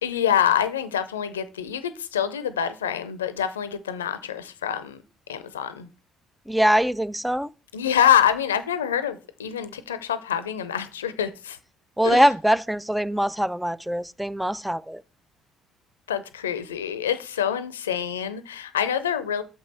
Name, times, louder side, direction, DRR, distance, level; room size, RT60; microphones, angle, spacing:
voice 1, 0.0-5.0 5.3-5.9 7.7-11.6 12.0-12.2 16.1-19.4, left 9 dB, 75° left, 0.6 m, -26 dB
voice 2, 6.5-7.5 12.0-15.0, equal, 5° right, 0.4 m, -22 dB
7.1 x 5.4 x 4.2 m
figure-of-eight pair, 50°, 0 cm